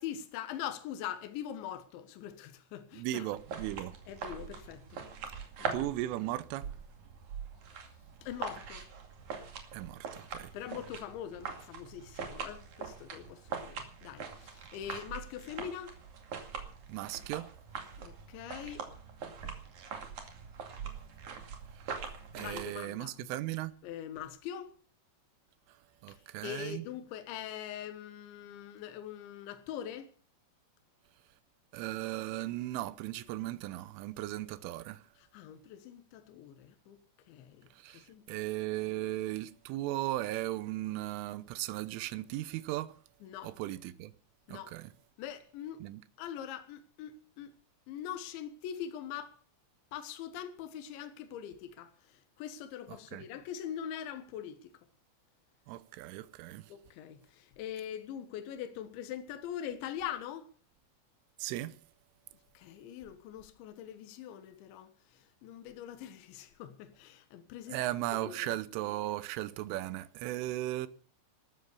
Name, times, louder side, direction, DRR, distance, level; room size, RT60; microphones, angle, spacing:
voice 1, 0.0-3.3 4.1-5.1 5.6-5.9 8.2-8.9 10.5-16.0 18.0-18.9 22.4-23.3 23.8-24.7 26.1-26.2 26.4-30.1 35.2-37.0 37.3-38.4 43.2-43.5 44.5-44.7 45.2-45.8 46.2-47.5 47.9-49.3 49.9-54.7 56.7-60.5 62.6-68.6, left 10 dB, 70° left, 3.6 m, -43 dB
voice 2, 2.9-4.0 5.4-5.5 5.7-6.7 9.7-10.5 16.9-17.5 21.9-23.8 26.0-26.9 31.7-35.0 37.7-42.9 43.4-44.1 44.5-44.9 45.8-46.0 53.1-53.2 55.7-56.7 61.4-61.8 67.7-70.9, right 16 dB, 85° right, 3.4 m, -37 dB
sound 1, 3.3-22.7, right 6 dB, 45° right, 3.1 m, -43 dB
13.5 x 13.5 x 7.0 m
omnidirectional pair, 5.6 m